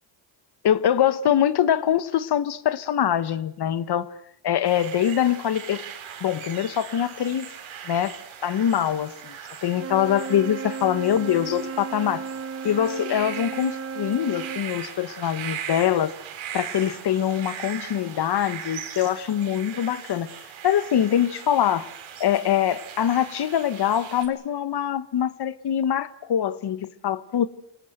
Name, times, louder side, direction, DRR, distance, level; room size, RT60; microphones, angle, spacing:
voice 1, 0.6-4.1 4.4-5.8 6.2-7.5 7.8-8.1 8.4-9.4 9.6-12.2 12.6-16.1 16.5-20.3 20.6-21.9 22.2-27.5, left 10 dB, 55° left, 1.3 m, -23 dB
sound 1, 4.6-24.3, right 8 dB, 90° right, 4.3 m, -39 dB
Wind instrument woodwind instrument, 9.7-14.7, right 5 dB, 30° right, 0.9 m, -34 dB
27.0 x 18.5 x 7.9 m
cardioid pair, 95°, 46 cm